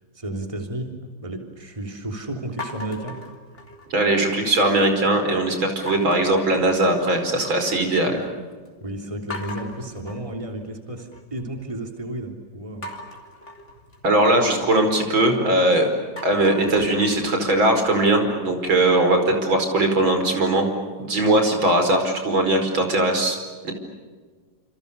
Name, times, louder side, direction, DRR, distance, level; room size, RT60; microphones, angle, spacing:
voice 1, 0.2-3.2 8.8-12.9, right 1 dB, 15° right, 3 dB, 3.4 m, -32 dB
sound 1, 2.6-4.1 4.5-5.0 5.9-7.4 7.7-8.3 8.7-8.8 9.3-11.4 12.8-15.6 16.0-18.9, left 1 dB, 35° left, 3.9 m, -39 dB
voice 2, 3.9-8.2 14.0-15.9 16.2-20.7 21.0-23.4 23.6-23.7, right 1 dB, 80° right, 5 dB, 5.6 m, -20 dB
28.5 x 28.0 x 7.0 m, 1.5 s
omnidirectional pair, 2.1 m